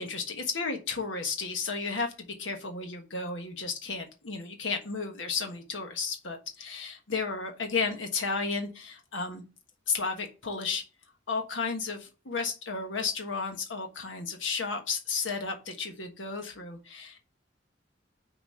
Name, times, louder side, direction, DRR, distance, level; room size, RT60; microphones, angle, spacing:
voice 1, 0.0-9.4 9.9-10.8 11.3-17.2, left 4 dB, 90° left, 4 dB, 1.3 m, -33 dB
6.6 x 4.1 x 6.4 m, 0.32 s
head